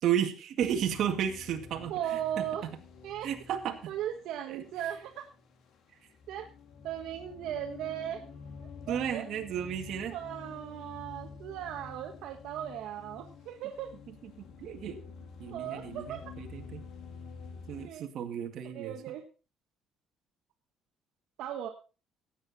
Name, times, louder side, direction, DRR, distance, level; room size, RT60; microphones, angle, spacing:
voice 1, 0.0-2.7 3.2-3.9 4.5-4.6 8.9-10.2 14.1-15.0 15.4-16.8 17.7-19.0, right 9 dB, 60° right, 4 dB, 2.0 m, -33 dB
sound 1, 0.6-17.9, left 5 dB, 60° left, 2.2 m, -49 dB
voice 2, 1.9-2.6 3.0-3.3 3.9-5.3 6.3-6.5 6.8-8.2 8.9-9.3 10.1-13.9 15.5-16.3 17.7-18.0 18.6-19.2 21.4-21.7, right 10 dB, 75° right, 3 dB, 1.3 m, -37 dB
15.5 x 9.1 x 4.2 m, 0.35 s
cardioid pair, 155°, 0 cm